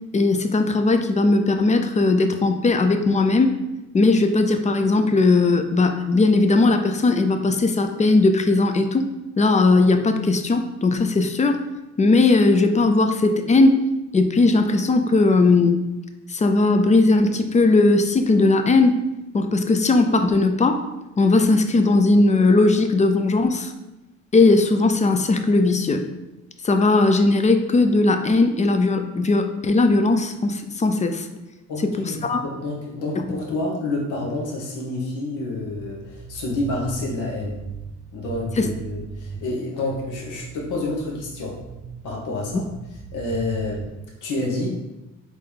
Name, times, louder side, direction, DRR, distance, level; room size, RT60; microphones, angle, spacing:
voice 1, 0.1-3.6 3.9-9.0 9.4-11.6 12.0-13.9 14.1-15.8 16.3-19.0 19.3-20.9 21.2-23.7 24.3-26.1 26.6-31.3 31.8-32.5 33.2-33.3 38.6-38.7, left 3 dB, 25° left, 7 dB, 0.4 m, -18 dB
voice 2, 31.7-37.6 38.1-41.6 42.0-42.6 43.1-43.9 44.2-44.7, left 2 dB, 85° left, -2 dB, 1.2 m, -28 dB
sound 1, 35.6-39.5 39.9-42.1 42.4-43.9, right 6 dB, 45° right, 0.5 m, -38 dB
4.0 x 3.3 x 3.4 m, 0.99 s
cardioid pair, 90°, 30 cm